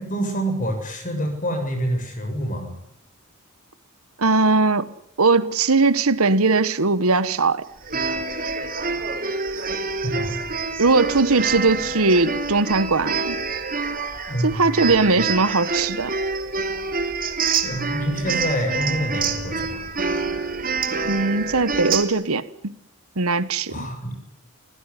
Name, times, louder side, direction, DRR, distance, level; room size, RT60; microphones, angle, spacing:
voice 1, 0.1-2.7 10.0-10.4 14.3-15.3 17.4-19.8 23.7-24.2, equal, 35° left, 7.3 m, -27 dB
voice 2, 4.2-4.9 5.2-7.6 10.8-13.4 14.4-16.1 21.0-22.7 23.2-23.9, right 3 dB, 80° right, 1.3 m, -20 dB
sound 1, 7.8-22.0, right 4 dB, 40° right, 3.0 m, -27 dB
27.0 x 16.0 x 9.9 m
head